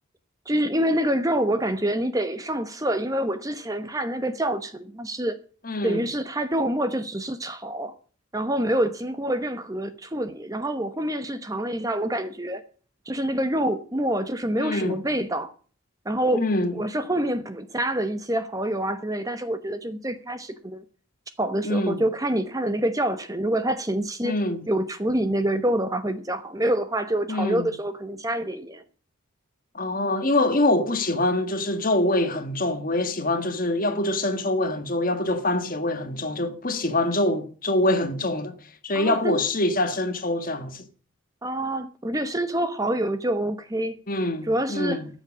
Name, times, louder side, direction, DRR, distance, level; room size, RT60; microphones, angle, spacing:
voice 1, 0.5-5.4 5.8-7.9 8.3-12.6 13.1-15.5 16.0-16.5 16.7-20.8 21.4-24.4 24.7-28.8 38.9-39.4 41.4-44.0 44.4-45.0, right 1 dB, 15° right, 0.9 m, -26 dB
voice 2, 5.6-6.0 14.6-15.0 16.3-16.7 21.6-22.0 24.2-24.6 27.3-27.7 29.7-38.5 38.8-40.8 44.1-45.1, left 1 dB, 40° left, 1.5 m, -24 dB
13.5 x 7.3 x 7.4 m
head